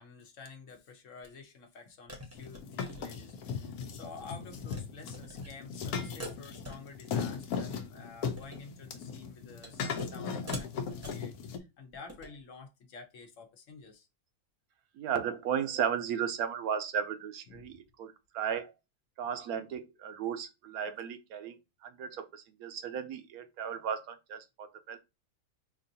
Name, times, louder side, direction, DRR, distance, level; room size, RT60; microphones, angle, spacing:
voice 1, 0.0-14.1 17.5-17.8 19.2-19.3, left 4 dB, 60° left, 1.0 m, -50 dB
sound 1, 1.2-1.3 2.1-3.6 3.9-4.2 4.5-4.8 5.1-5.5 6.2-7.2 7.5-7.8 8.2-8.7 9.6-10.2 10.5-11.3 11.9-12.4, equal, 15° right, 0.7 m, -45 dB
sound 2, 2.3-11.6, left 6 dB, 85° left, 1.1 m, -38 dB
voice 2, 14.9-18.7 19.2-21.6 21.8-25.0, right 8 dB, 80° right, 1.1 m, -35 dB
5.0 x 2.5 x 2.7 m
omnidirectional pair, 1.6 m